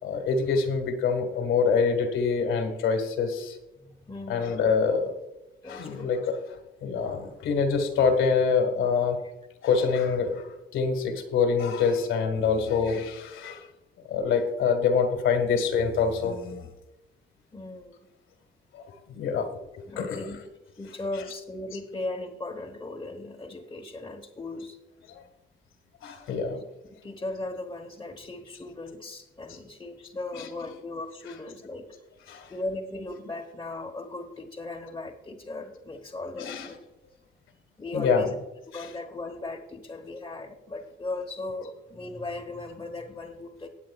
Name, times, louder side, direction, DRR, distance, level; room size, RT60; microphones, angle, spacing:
voice 1, 0.0-3.6 4.3-5.1 5.7-6.4 6.8-9.2 9.6-10.4 10.7-13.7 14.1-16.7 18.7-18.8 19.2-19.5 19.8-20.4 20.9-21.3 21.7-21.8 26.0-26.6 30.3-30.7 31.3-31.4 32.3-32.5 36.4-36.7 37.9-38.3 38.7-38.9, left 5 dB, 80° left, 6 dB, 1.7 m, -26 dB
voice 2, 3.8-4.6 5.6-6.1 17.5-18.0 19.9-20.4 20.8-24.8 26.3-26.6 27.0-32.0 32.5-36.8 37.8-38.3 38.7-43.7, left 2 dB, 20° left, -1 dB, 1.1 m, -37 dB
18.0 x 8.5 x 2.4 m, 0.96 s
cardioid pair, 90°, 20 cm